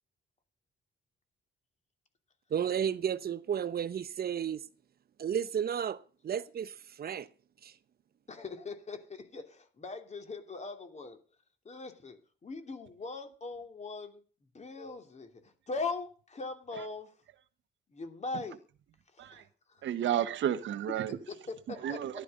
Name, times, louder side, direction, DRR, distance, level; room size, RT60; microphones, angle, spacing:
voice 1, 2.5-4.6 5.2-7.3 7.6-7.7, right 8 dB, 50° right, 0.9 m, -33 dB
voice 2, 8.3-11.2 11.6-14.2 14.5-15.4 15.7-17.1 17.9-18.6 19.3-19.8 21.0-21.6 21.9-22.0, left 3 dB, 35° left, 2.9 m, -40 dB
voice 3, 19.8-21.2 21.8-22.2, right 10 dB, 70° right, 1.3 m, -32 dB
14.5 x 11.5 x 5.4 m
cardioid pair, 90°, 20 cm